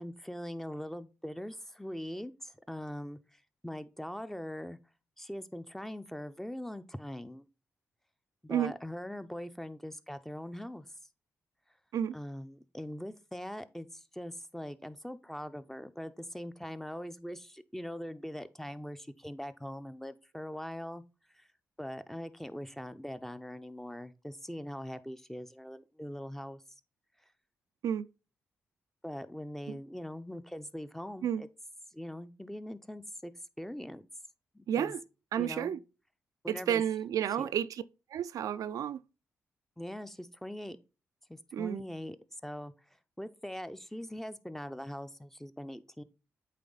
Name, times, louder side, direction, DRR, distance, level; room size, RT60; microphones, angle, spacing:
voice 1, 0.0-4.8 5.2-7.5 8.4-10.9 12.1-21.0 21.3-21.5 21.8-26.6 29.0-31.5 31.9-33.3 33.6-34.0 34.5-34.9 35.4-35.8 36.4-36.8 37.4-37.5 39.8-40.8 41.3-42.2 42.4-42.7 43.2-46.0, equal, 5° left, 0.6 m, -42 dB
voice 2, 34.7-35.0 35.3-35.8 36.5-37.8 38.1-39.0 41.5-41.8, right 9 dB, 75° right, 0.3 m, -31 dB
8.4 x 3.3 x 3.9 m
supercardioid pair, 45°, 6 cm